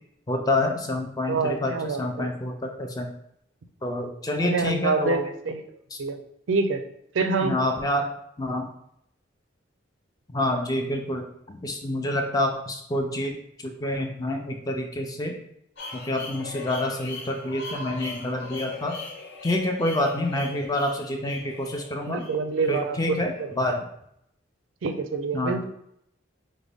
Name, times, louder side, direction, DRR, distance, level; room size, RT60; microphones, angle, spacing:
voice 1, 0.3-3.1 3.8-5.3 5.9-6.0 7.4-8.1 8.4-8.7 10.3-15.4 15.9-19.0 19.4-22.3 22.7-23.8 25.3-25.6, left 1 dB, 20° left, 3 dB, 0.4 m, -27 dB
voice 2, 1.2-2.3 4.4-5.6 6.0-6.2 6.5-6.8 7.1-7.6 22.1-23.5 24.8-25.6, right 3 dB, 90° right, 8 dB, 0.4 m, -26 dB
sound 1, 15.8-23.6, left 3 dB, 60° left, 0.7 m, -40 dB
4.9 x 2.2 x 3.4 m, 0.74 s
head